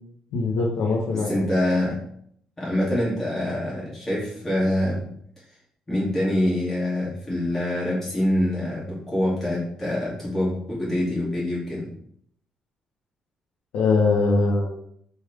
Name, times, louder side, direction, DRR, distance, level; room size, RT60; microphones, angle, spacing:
voice 1, 0.3-1.5 13.7-14.7, left 3 dB, 85° left, -2 dB, 1.2 m, -22 dB
voice 2, 1.1-2.0 2.6-5.0 5.9-11.9, left 1 dB, 15° left, -6 dB, 2.6 m, -25 dB
6.9 x 4.4 x 3.5 m, 0.65 s
cardioid pair, 175°, 2 cm